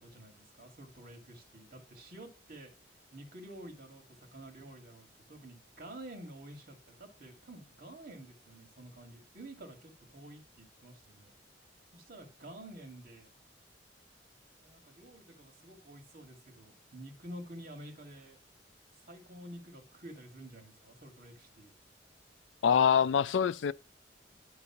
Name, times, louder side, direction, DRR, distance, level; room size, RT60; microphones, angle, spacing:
voice 1, 0.0-2.7 3.1-11.3 11.9-13.3 14.6-18.4 19.0-21.7, right 1 dB, 50° right, 2.3 m, -50 dB
voice 2, 22.6-23.7, left 7 dB, 80° left, 0.4 m, -25 dB
10.5 x 4.0 x 5.8 m
head